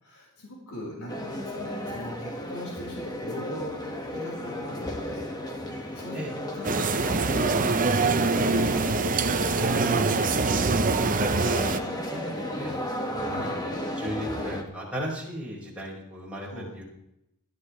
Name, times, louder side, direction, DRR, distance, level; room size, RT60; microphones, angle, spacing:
voice 1, 0.0-3.8 4.1-5.3 5.6-6.2 6.5-11.2 11.8-12.3 12.6-12.9 13.2-13.6 16.5-16.7, equal, 85° left, -3 dB, 4.4 m, -40 dB
sound 1, 1.1-14.6, left 1 dB, 20° left, 1.6 m, -34 dB
sound 2, 6.6-11.8, right 3 dB, 40° right, 0.8 m, -24 dB
voice 2, 12.1-12.7 13.0-13.6 14.0-16.8, equal, 5° right, -6 dB, 5.2 m, -36 dB
20.0 x 12.5 x 3.3 m, 0.82 s
head